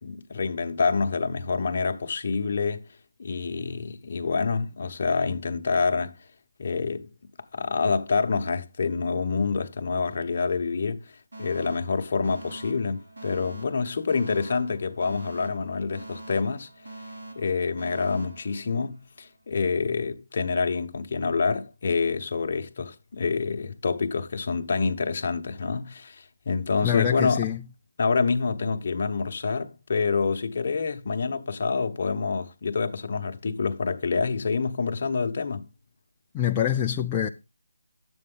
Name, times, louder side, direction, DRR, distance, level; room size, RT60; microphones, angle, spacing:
voice 1, 0.0-2.8 3.2-6.1 6.6-7.1 7.5-11.1 11.4-16.7 17.3-27.5 28.0-35.7, left 4 dB, 45° left, 1.0 m, -27 dB
Alarm, 11.3-19.3, right 2 dB, 90° right, 7.0 m, -44 dB
voice 2, 26.8-27.6 36.3-37.3, left 10 dB, 15° left, 0.4 m, -25 dB
10.5 x 7.9 x 3.8 m
figure-of-eight pair, 165°, 0 cm